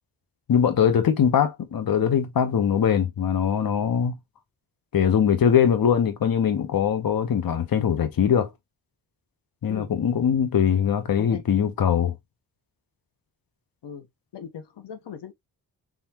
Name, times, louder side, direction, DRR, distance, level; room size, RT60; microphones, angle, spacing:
voice 1, 0.5-4.1 4.9-8.5 9.6-12.2, left 8 dB, 60° left, 1.0 m, -22 dB
voice 2, 14.3-15.3, left 8 dB, 85° left, 0.9 m, -39 dB
3.7 x 3.6 x 2.8 m
cardioid pair, 90°, 40 cm